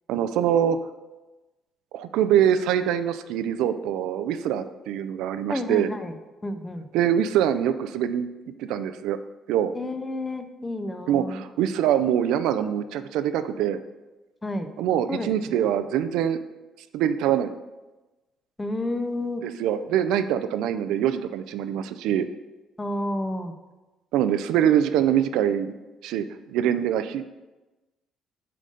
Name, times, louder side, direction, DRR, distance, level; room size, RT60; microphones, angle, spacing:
voice 1, 0.1-0.8 1.9-5.9 6.9-8.3 8.6-9.2 9.5-9.7 11.1-13.8 14.8-16.4 16.9-17.5 19.4-22.3 24.1-25.7 26.0-27.2, right 10 dB, 80° right, 11 dB, 0.4 m, -24 dB
voice 2, 5.5-6.1 6.4-6.9 9.7-11.4 14.4-14.7 15.1-15.3 18.6-19.4 22.8-23.5, left 1 dB, 10° left, 8 dB, 0.5 m, -30 dB
7.5 x 3.9 x 5.1 m, 1.1 s
cardioid pair, 160°, 0 cm